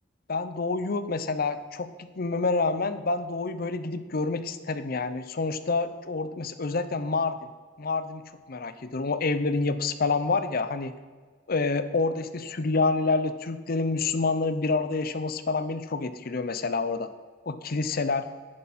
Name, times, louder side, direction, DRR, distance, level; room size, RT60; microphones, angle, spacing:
voice 1, 0.3-7.4 7.8-10.9 11.5-17.1 17.5-18.3, left 3 dB, 55° left, 11 dB, 0.7 m, -28 dB
11.0 x 10.0 x 4.2 m, 1.5 s
head